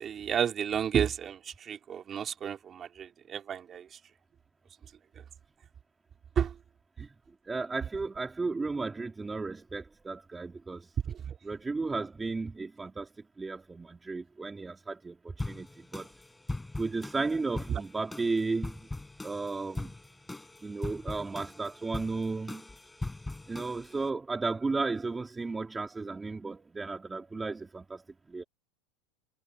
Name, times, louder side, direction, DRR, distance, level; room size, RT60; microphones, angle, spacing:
voice 1, 0.0-4.0 6.4-6.5 11.1-11.4 17.7-17.8, right 8 dB, 30° right, 4.1 m, -32 dB
voice 2, 7.5-10.9 11.4-13.1 13.4-16.1 16.8-18.8 19.2-20.0 20.6-22.6 23.5-28.0 28.3-28.4, right 3 dB, 15° right, 3.6 m, -34 dB
sound 1, 15.4-24.1, left 2 dB, 10° left, 7.8 m, -41 dB
supercardioid pair, 115°, 0 cm